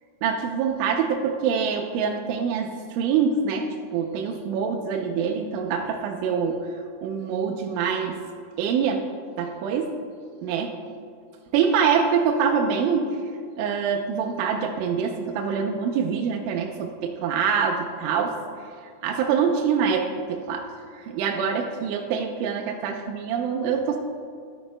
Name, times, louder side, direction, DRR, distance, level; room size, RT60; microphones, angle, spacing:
voice 1, 0.2-6.7 7.0-8.2 8.6-9.0 9.4-9.9 10.4-10.7 11.5-13.2 13.6-18.3 19.0-20.6 21.0-24.0, right 6 dB, 80° right, 0 dB, 2.8 m, -25 dB
14.5 x 12.5 x 2.2 m, 2.2 s
omnidirectional pair, 6.0 m